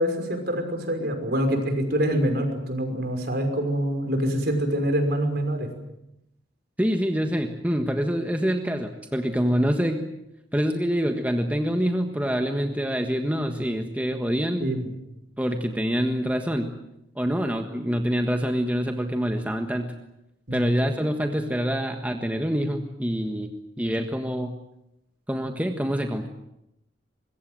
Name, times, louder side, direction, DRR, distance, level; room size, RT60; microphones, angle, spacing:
voice 1, 0.0-5.7 14.6-14.9 20.5-20.7, equal, 55° right, 5 dB, 5.8 m, -25 dB
voice 2, 6.8-10.0 10.5-14.7 15.4-16.7 17.1-19.9 20.5-23.5 23.8-24.5 25.3-26.3, equal, 10° right, 4 dB, 1.5 m, -26 dB
25.0 x 22.5 x 7.9 m, 0.84 s
head